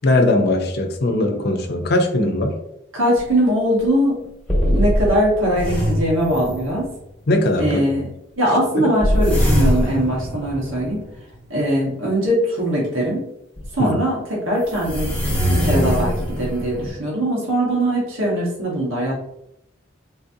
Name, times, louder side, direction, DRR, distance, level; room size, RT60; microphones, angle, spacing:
voice 1, 0.0-2.6 7.3-7.8 8.7-8.9 13.8-13.9, left 2 dB, 55° left, 5 dB, 0.5 m, -19 dB
voice 2, 2.9-4.2 4.6-6.9 7.6-8.1 8.4-11.1 11.5-13.2 13.7-15.1 15.5-19.1, equal, 85° right, -4 dB, 1.2 m, -21 dB
sound 1, 3.2-3.3 3.8-3.9 4.5-7.0 9.0-11.4 13.6-13.7 14.7-16.9, equal, 5° left, 1.0 m, -21 dB
4.0 x 2.6 x 2.6 m, 0.81 s
head